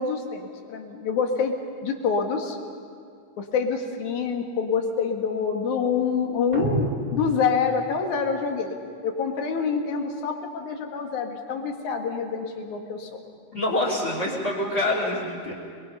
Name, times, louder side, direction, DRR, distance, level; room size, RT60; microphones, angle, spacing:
voice 1, 0.0-1.6 1.8-2.6 3.4-8.8 9.0-13.2, left 5 dB, 65° left, 3 dB, 3.1 m, -26 dB
sound 1, 6.5-8.0, equal, 15° right, 1.8 m, -29 dB
voice 2, 13.5-15.5, left 1 dB, 35° left, -2 dB, 3.6 m, -26 dB
29.5 x 21.5 x 5.7 m, 2.3 s
omnidirectional pair, 3.9 m